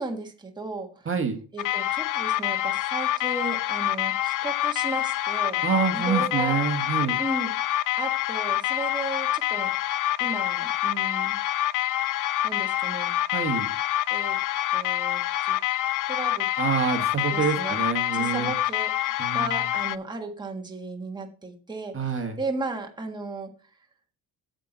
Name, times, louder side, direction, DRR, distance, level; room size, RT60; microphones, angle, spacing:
voice 1, 0.0-1.1 1.5-5.6 5.9-7.5 8.0-9.7 10.2-11.4 12.4-13.1 14.1-14.4 14.7-15.6 16.1-16.5 17.3-17.8 18.1-23.5, right 3 dB, 10° right, 2 dB, 1.5 m, -35 dB
voice 2, 1.0-1.4 5.6-7.2 13.3-13.7 16.6-18.5 19.2-19.6 21.9-22.4, right 6 dB, 35° right, 5 dB, 1.5 m, -27 dB
sound 1, 1.6-20.0, left 13 dB, 55° left, 0.5 m, -26 dB
8.8 x 7.5 x 3.9 m, 0.37 s
cardioid pair, 105°, 38 cm